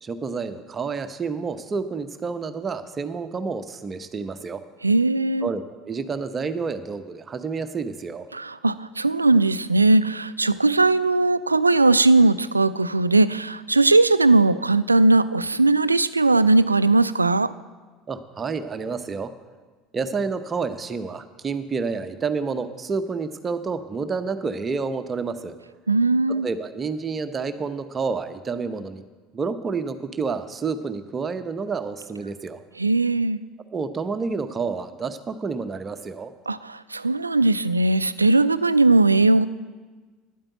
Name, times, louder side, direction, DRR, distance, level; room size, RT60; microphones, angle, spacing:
voice 1, 0.0-4.6 5.4-8.3 18.1-19.3 19.9-25.5 26.3-29.0 29.3-32.6 33.7-36.3, right 4 dB, 30° right, 10 dB, 0.8 m, -29 dB
voice 2, 4.8-5.5 8.3-17.5 25.9-26.5 32.8-33.4 36.5-39.4, right 2 dB, 90° right, 16 dB, 0.3 m, -19 dB
10.0 x 8.9 x 8.0 m, 1.3 s
figure-of-eight pair, 70°, 0 cm